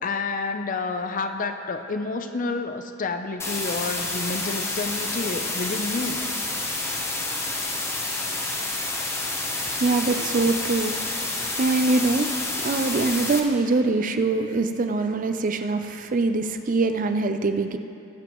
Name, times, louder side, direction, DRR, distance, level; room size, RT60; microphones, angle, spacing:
voice 1, 0.0-6.2, left 3 dB, 40° left, 7 dB, 0.5 m, -29 dB
sound 1, 3.4-13.4, left 2 dB, 10° left, 0.8 m, -29 dB
voice 2, 9.8-12.3 12.6-17.8, right 3 dB, 40° right, 8 dB, 0.4 m, -24 dB
20.0 x 7.1 x 3.0 m, 2.7 s
head